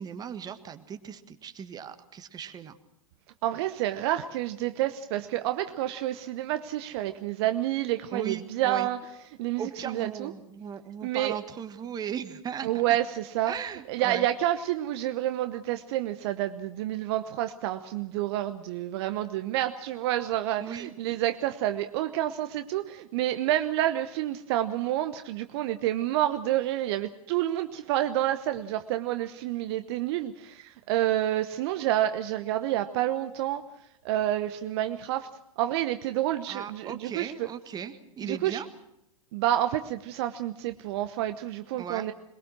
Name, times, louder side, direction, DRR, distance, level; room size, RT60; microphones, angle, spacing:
voice 1, 0.0-2.8 8.1-8.9 9.6-13.0 13.5-14.3 20.6-20.9 36.5-38.7 41.8-42.1, right 8 dB, 20° right, 9 dB, 1.7 m, -37 dB
voice 2, 3.4-9.0 9.4-10.3 11.0-11.4 12.6-13.5 13.9-33.7 34.0-35.3 35.6-37.5 38.2-38.6 39.3-42.1, right 13 dB, 50° right, 9 dB, 1.0 m, -29 dB
22.0 x 21.5 x 6.2 m, 0.83 s
figure-of-eight pair, 95°, 18 cm